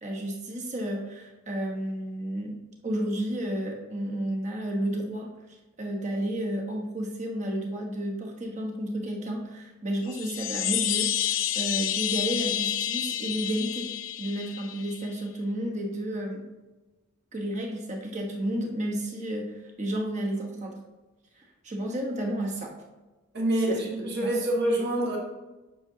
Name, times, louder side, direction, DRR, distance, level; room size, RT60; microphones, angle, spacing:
voice 1, 0.0-2.6 2.8-5.3 5.8-13.9 14.2-16.5 17.3-20.8 21.4-22.7 23.5-23.8 24.2-24.5, right 1 dB, 35° right, 0 dB, 1.2 m, -32 dB
sound 1, 10.0-15.1, left 11 dB, 70° left, 0.6 m, -29 dB
voice 2, 23.3-25.2, right 1 dB, 50° right, -2 dB, 1.6 m, -26 dB
9.3 x 6.3 x 2.8 m, 1.2 s
head